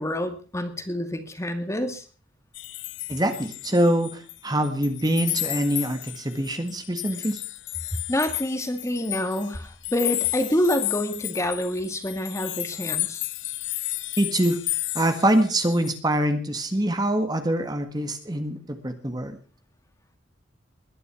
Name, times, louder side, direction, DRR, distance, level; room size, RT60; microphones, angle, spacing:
voice 1, 0.0-2.0 8.1-13.2, left 1 dB, 15° left, 8 dB, 2.1 m, -27 dB
sound 1, 2.5-4.4 4.6-16.0, left 17 dB, 65° left, 0.9 m, -32 dB
voice 2, 3.1-7.4 14.2-14.6 14.9-19.4, right 1 dB, 20° right, 7 dB, 1.7 m, -24 dB
21.0 x 11.0 x 6.0 m, 0.39 s
head